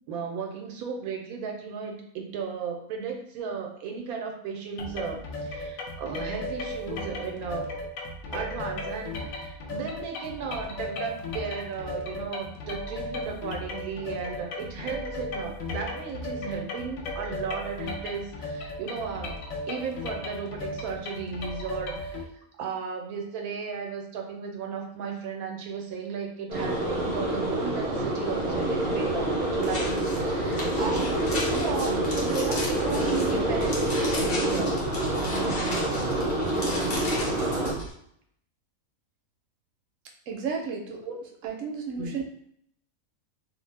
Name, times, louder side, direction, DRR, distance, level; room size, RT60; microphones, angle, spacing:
voice 1, 0.1-7.7 8.3-22.2 22.6-33.7 34.1-34.8 41.0-41.2 42.0-42.1, right 6 dB, 90° right, 2 dB, 1.1 m, -35 dB
sound 1, 4.8-22.2, left 2 dB, 75° left, 1.0 m, -36 dB
sound 2, 26.5-37.7, right 1 dB, 35° right, 0.6 m, -27 dB
sound 3, 29.6-37.9, left 1 dB, 45° left, 0.8 m, -35 dB
voice 2, 33.3-33.6 40.3-41.0 41.4-42.2, right 5 dB, 70° right, 1 dB, 0.9 m, -33 dB
2.6 x 2.1 x 3.2 m, 0.69 s
omnidirectional pair, 1.5 m